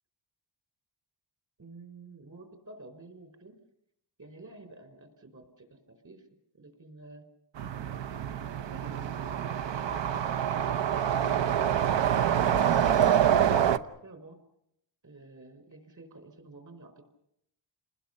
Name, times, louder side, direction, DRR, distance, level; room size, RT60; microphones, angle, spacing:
voice 1, 1.6-3.6 4.2-6.3 6.5-7.3 13.6-14.4 15.0-17.0, right 2 dB, 45° right, 8 dB, 4.9 m, -51 dB
sound 1, 7.6-13.8, right 9 dB, 90° right, 1.0 m, -26 dB
29.0 x 20.5 x 6.8 m, 0.77 s
wide cardioid pair, 130°, 42 cm